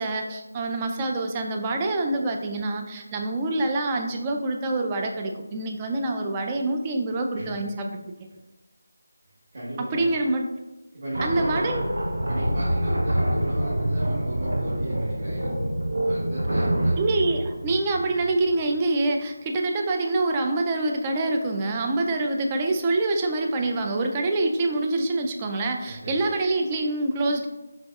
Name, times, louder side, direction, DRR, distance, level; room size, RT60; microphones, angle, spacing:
voice 1, 0.0-8.1 9.9-10.4 11.2-11.9 17.0-27.5, right 2 dB, 20° right, 3 dB, 0.3 m, -26 dB
voice 2, 9.5-10.1 10.9-11.8 12.2-15.7 16.0-17.4 25.8-26.3, right 1 dB, 50° right, -8 dB, 1.2 m, -36 dB
sound 1, 11.1-18.5, right 1 dB, 85° right, 0.7 m, -26 dB
4.0 x 3.7 x 2.3 m, 1.1 s
figure-of-eight pair, 165°, 0 cm